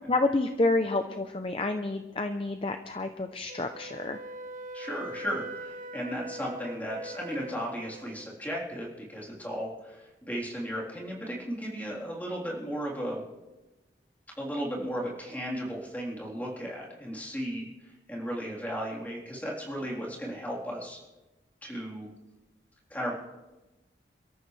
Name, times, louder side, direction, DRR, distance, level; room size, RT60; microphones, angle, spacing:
voice 1, 0.1-4.2, left 2 dB, 30° left, 7 dB, 0.6 m, -29 dB
Wind instrument woodwind instrument, 3.5-8.2, right 1 dB, 50° right, 0.9 m, -42 dB
voice 2, 4.7-13.2 14.4-21.0 21.6-22.1 22.9-23.1, equal, 10° left, -4 dB, 3.8 m, -35 dB
29.0 x 13.5 x 3.3 m, 1.1 s
head